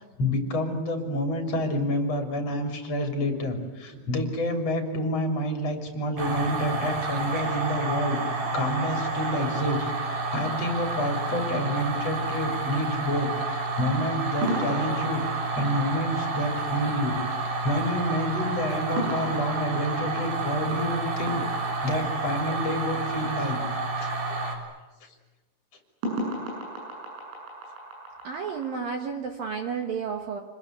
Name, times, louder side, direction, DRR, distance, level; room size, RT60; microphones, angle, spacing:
voice 1, 0.2-21.4 21.8-23.6 24.0-24.3, left 1 dB, 35° left, 4 dB, 3.7 m, -29 dB
sound 1, 6.2-24.5, right 3 dB, 45° right, 4.9 m, -30 dB
sound 2, 10.8-12.2 14.4-23.0 26.0-28.7, right 1 dB, 90° right, 10.5 m, -36 dB
voice 2, 28.2-30.4, right 6 dB, 65° right, 5 dB, 2.3 m, -31 dB
28.0 x 20.5 x 9.6 m, 1.1 s
omnidirectional pair, 6.0 m